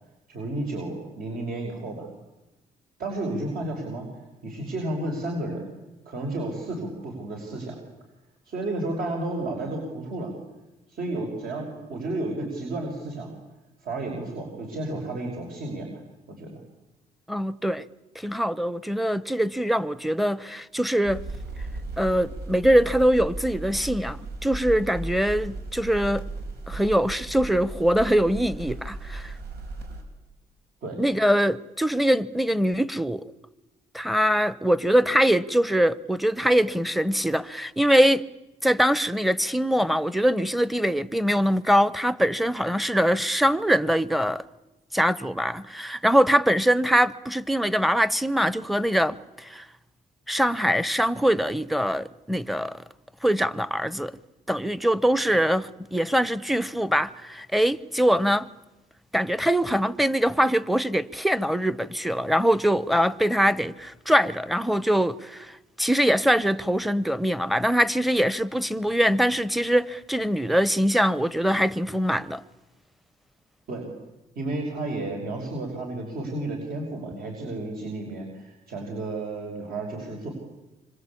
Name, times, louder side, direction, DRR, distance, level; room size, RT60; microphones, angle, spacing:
voice 1, 0.3-2.1 3.0-4.1 4.4-5.7 6.1-7.8 8.5-10.3 10.9-13.3 13.8-16.0 16.3-16.6 30.8-31.0 73.7-73.9 74.4-80.3, right 2 dB, 65° right, 5.8 m, -32 dB
voice 2, 17.3-17.8 18.1-21.2 22.0-26.2 26.7-29.3 31.0-33.3 33.9-38.2 38.6-44.4 44.9-49.6 50.3-52.8 53.2-54.1 54.5-58.5 59.1-72.4, equal, ahead, 0.9 m, -23 dB
sound 1, 21.0-30.0, right 2 dB, 80° right, 6.0 m, -36 dB
26.5 x 25.5 x 8.6 m
cardioid pair, 110°, 16 cm